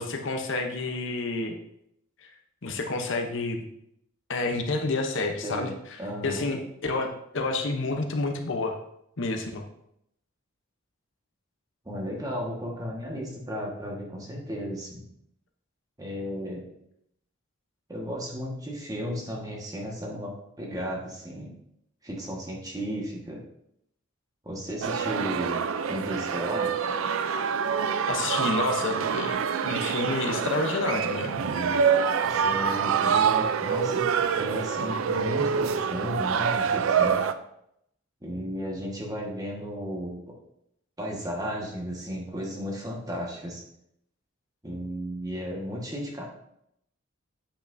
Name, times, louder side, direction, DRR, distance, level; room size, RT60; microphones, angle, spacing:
voice 1, 0.0-1.6 2.6-3.7 4.3-5.7 6.2-8.8 9.2-9.6 28.1-31.3, left 3 dB, 65° left, 4 dB, 0.8 m, -29 dB
voice 2, 5.4-6.5 11.8-15.0 16.0-16.6 17.9-21.5 22.0-23.4 24.4-25.6 25.9-26.7 31.3-31.8 32.2-37.2 38.2-40.2 41.0-43.6 44.6-46.2, equal, 20° right, -2 dB, 1.4 m, -34 dB
sound 1, 24.8-37.3, right 7 dB, 85° right, 0.4 m, -26 dB
8.5 x 5.8 x 2.6 m, 0.76 s
head